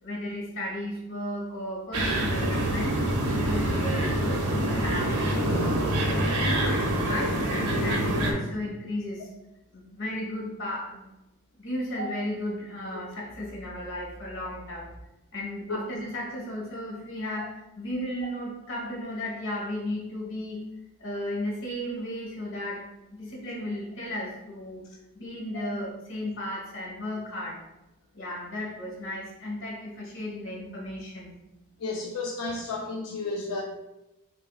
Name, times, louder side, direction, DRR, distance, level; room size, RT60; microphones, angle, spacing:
voice 1, 0.0-3.0 3.3-9.3 9.7-11.1 11.6-14.9 15.3-20.6 21.0-24.8 25.1-27.6 28.1-31.3, left 1 dB, 60° left, -3 dB, 1.2 m, -35 dB
sound 1, 1.9-8.3, right 1 dB, 90° right, 0.8 m, -26 dB
voice 2, 31.8-33.6, left 3 dB, 85° left, -1 dB, 0.4 m, -32 dB
5.8 x 2.6 x 2.3 m, 0.98 s
head